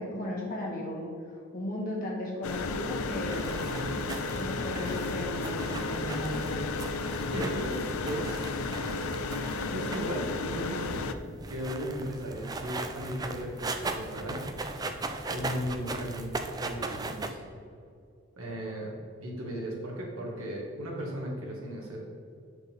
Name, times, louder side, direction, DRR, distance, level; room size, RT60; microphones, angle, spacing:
voice 1, 0.0-3.6 4.3-6.6 7.3-7.5, left 1 dB, 40° left, -3 dB, 1.7 m, -36 dB
sound 1, 2.4-11.1, left 3 dB, 90° left, 0.4 m, -33 dB
sound 2, 3.2-17.3, right 3 dB, 20° right, 0.3 m, -39 dB
voice 2, 7.2-7.8 8.0-8.8 9.7-11.0 11.5-14.5 14.7-16.3 16.6-17.5 18.4-19.0 19.2-22.0, equal, 90° right, -2 dB, 1.7 m, -36 dB
7.4 x 5.8 x 3.5 m, 2.3 s
head